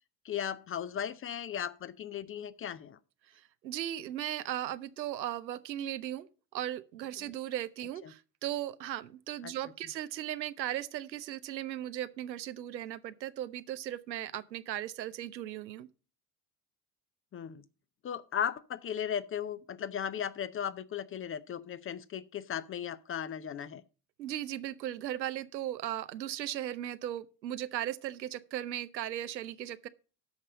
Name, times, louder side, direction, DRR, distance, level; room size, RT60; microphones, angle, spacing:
voice 1, 0.2-3.0 8.0-8.1 9.4-9.5 17.3-17.6 18.0-23.8, left 9 dB, 25° left, 0.6 m, -36 dB
voice 2, 3.3-6.3 6.5-15.9 24.2-29.9, right 12 dB, 85° right, 0.7 m, -37 dB
13.0 x 5.4 x 5.0 m
hypercardioid pair, 65°, 50 cm